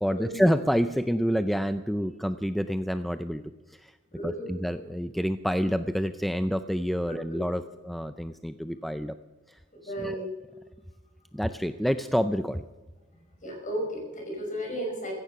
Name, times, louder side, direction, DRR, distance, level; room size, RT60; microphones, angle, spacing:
voice 1, 0.0-3.4 3.7-3.9 4.2-9.1 9.5-10.3 11.3-12.6, equal, ahead, 10 dB, 0.4 m, -28 dB
voice 2, 4.1-4.5 7.3-7.4 9.8-10.3 13.4-15.1, right 1 dB, 40° left, 1 dB, 5.7 m, -34 dB
16.0 x 15.0 x 5.8 m, 1.3 s
head